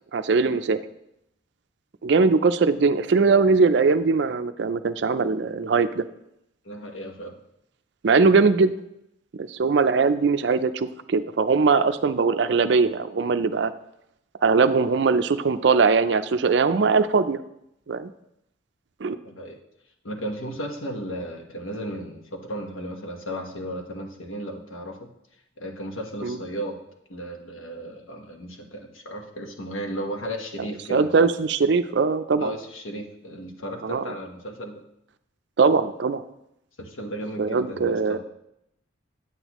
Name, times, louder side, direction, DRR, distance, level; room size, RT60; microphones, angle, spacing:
voice 1, 0.1-0.8 2.0-6.0 8.0-8.7 9.3-13.7 14.4-17.4 17.9-18.1 19.0-19.2 26.2-26.4 30.9-32.5 33.8-34.1 35.6-36.2 37.4-38.2, right 4 dB, 60° right, 12 dB, 0.4 m, -21 dB
voice 2, 6.6-7.3 19.2-19.6 20.0-25.1 25.6-26.7 27.1-31.1 32.4-34.8 36.8-38.2, equal, 90° left, 3 dB, 1.2 m, -35 dB
8.8 x 8.2 x 3.0 m, 0.81 s
head